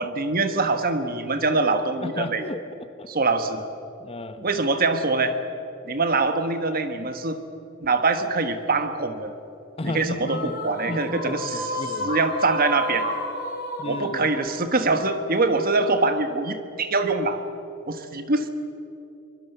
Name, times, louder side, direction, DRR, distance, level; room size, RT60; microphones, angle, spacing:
voice 1, 0.0-2.4 3.1-3.6 4.4-5.4 5.8-7.4 7.8-9.3 9.8-10.4 10.6-11.8 12.0-13.1 13.9-17.4 17.9-18.5, right 3 dB, 40° right, 9 dB, 1.3 m, -24 dB
voice 2, 2.0-3.1 4.0-4.5 9.8-10.6 10.9-12.2 13.8-14.2, left 2 dB, 25° left, 10 dB, 0.9 m, -33 dB
sound 1, 10.3-15.7, left 1 dB, 45° left, 2.9 m, -32 dB
24.0 x 21.5 x 6.8 m, 2.9 s
head